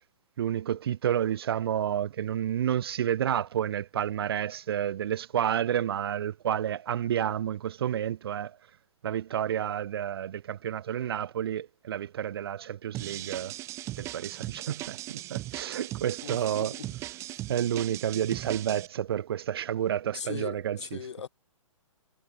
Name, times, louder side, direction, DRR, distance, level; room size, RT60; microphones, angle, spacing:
voice 1, 0.4-8.6 9.0-13.5 14.0-16.8 17.5-21.0, right 10 dB, 45° right, 0.9 m, -30 dB
sound 1, 12.9-18.9, right 16 dB, 15° right, 0.6 m, -38 dB
voice 2, 16.2-16.9 20.1-21.3, left 7 dB, 55° left, 4.9 m, -39 dB
figure-of-eight pair, 125°, 17 cm